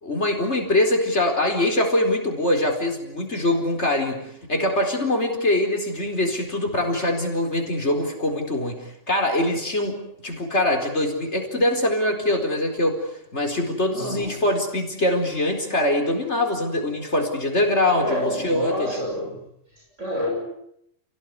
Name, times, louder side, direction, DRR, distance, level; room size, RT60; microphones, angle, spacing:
voice 1, 0.0-4.2 4.5-8.8 9.1-10.0 10.2-13.0 13.3-18.9, left 1 dB, 65° left, 3 dB, 4.8 m, -23 dB
voice 2, 13.9-14.3 17.9-19.4 19.7-20.4, equal, 75° right, -1 dB, 8.3 m, -28 dB
29.5 x 18.0 x 9.7 m, 0.76 s
omnidirectional pair, 1.3 m